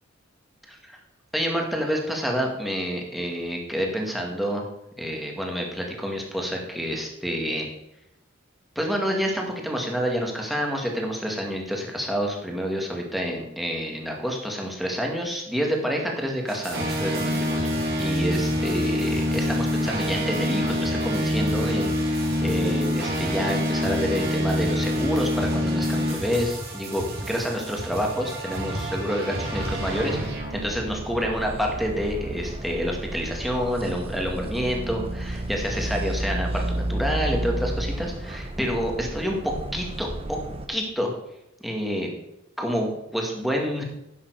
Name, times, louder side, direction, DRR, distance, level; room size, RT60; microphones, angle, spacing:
voice 1, 1.3-4.6 5.0-7.7 8.8-17.7 18.0-30.2 30.5-40.4 40.7-41.1 41.6-42.1 42.6-43.8, equal, ahead, 0 dB, 1.9 m, -28 dB
sound 1, 16.5-30.8, equal, 55° right, 2.6 m, -26 dB
sound 2, 29.5-40.7, right 1 dB, 30° right, 0.9 m, -32 dB
11.0 x 7.3 x 4.7 m, 0.84 s
head